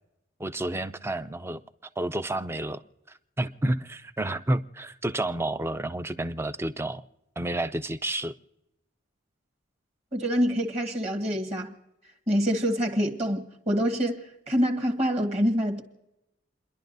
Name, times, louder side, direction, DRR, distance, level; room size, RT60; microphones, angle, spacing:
voice 1, 0.4-1.6 2.0-2.8 3.1-7.0 7.4-8.3, right 1 dB, 10° right, 0.4 m, -30 dB
voice 2, 10.1-11.7 12.3-15.8, equal, 30° right, 1.5 m, -26 dB
30.0 x 11.0 x 2.6 m
head